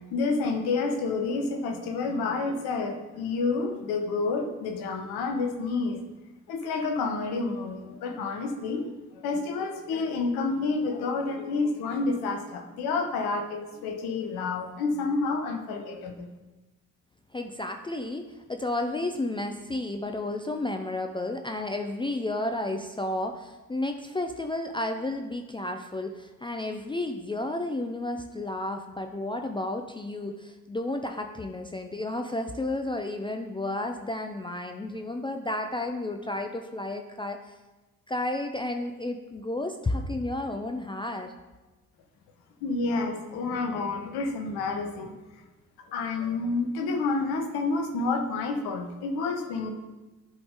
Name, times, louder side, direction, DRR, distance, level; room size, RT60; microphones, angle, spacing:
voice 1, 0.1-6.1 6.5-8.9 9.1-16.3 42.6-45.1 45.9-49.7, left 3 dB, 60° left, 4 dB, 1.2 m, -29 dB
voice 2, 17.3-37.4 38.1-41.3, left 2 dB, 10° left, 5 dB, 0.6 m, -32 dB
11.0 x 5.0 x 3.7 m, 1.1 s
figure-of-eight pair, 45°, 44 cm